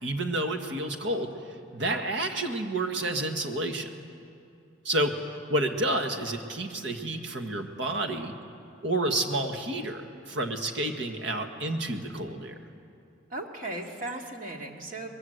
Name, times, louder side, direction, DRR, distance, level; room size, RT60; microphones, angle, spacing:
voice 1, 0.0-1.3 1.7-3.9 4.9-5.2 5.5-8.4 8.8-12.6, right 1 dB, 65° right, 5 dB, 1.8 m, -30 dB
voice 2, 13.3-15.1, right 2 dB, 45° right, 1 dB, 2.3 m, -37 dB
22.5 x 21.0 x 7.9 m, 2.5 s
head